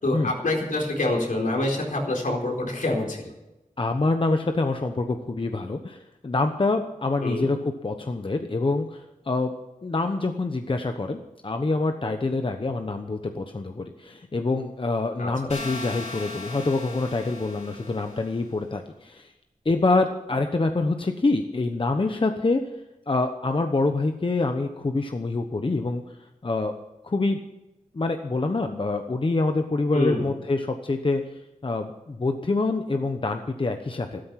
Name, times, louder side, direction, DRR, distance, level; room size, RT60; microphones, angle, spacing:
voice 1, 0.0-3.2 7.2-7.5 15.2-15.5 29.9-30.2, left 2 dB, 75° left, 0 dB, 4.3 m, -26 dB
voice 2, 3.8-9.5 9.8-19.3 19.6-22.6 23.1-26.2 26.4-26.7 27.0-27.4 27.9-34.2, left 3 dB, 40° left, 6 dB, 1.0 m, -26 dB
sound 1, 15.5-18.4, left 3 dB, 60° left, 5.1 m, -38 dB
14.0 x 13.0 x 5.9 m, 0.97 s
wide cardioid pair, 95°, 14 cm